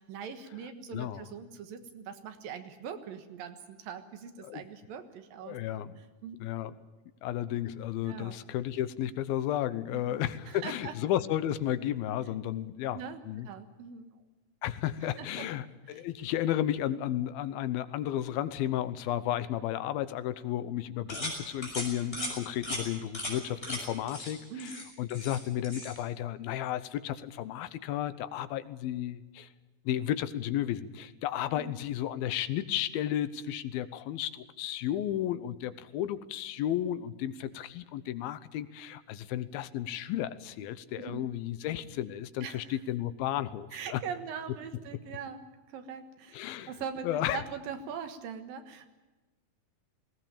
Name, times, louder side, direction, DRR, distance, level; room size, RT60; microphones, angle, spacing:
voice 1, 0.0-5.6 6.2-6.4 8.0-8.4 9.9-10.9 12.9-13.2 13.5-14.2 15.2-15.5 15.9-16.0 22.1-22.4 24.5-24.9 31.6-31.8 41.0-41.2 42.4-42.8 43.7-46.4 46.7-48.9, right 7 dB, 70° right, 8 dB, 3.0 m, -42 dB
voice 2, 0.9-1.2 4.4-4.6 5.4-5.9 6.4-6.7 7.2-13.5 14.6-29.5 29.9-44.0 46.3-46.7 47.0-47.4, left 12 dB, 80° left, 14 dB, 2.7 m, -33 dB
sound 1, 21.1-21.4 21.6-21.9 22.1-22.3 22.6-22.8 23.1-23.3 23.6-23.8 24.1-24.3 24.6-25.4 25.6-25.9, left 1 dB, 15° left, 5.9 m, -36 dB
19.5 x 18.0 x 8.7 m, 1.2 s
omnidirectional pair, 4.3 m